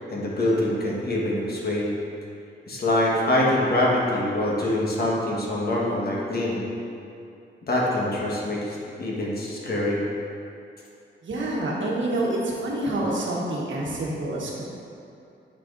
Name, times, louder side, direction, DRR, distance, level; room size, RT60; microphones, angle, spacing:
voice 1, 0.1-1.9 2.7-6.7 7.6-10.1, left 1 dB, 50° left, -4 dB, 1.3 m, -24 dB
voice 2, 11.2-14.6, right 1 dB, 70° right, -3 dB, 1.3 m, -27 dB
10.0 x 5.1 x 2.5 m, 2.6 s
wide cardioid pair, 125°, 20 cm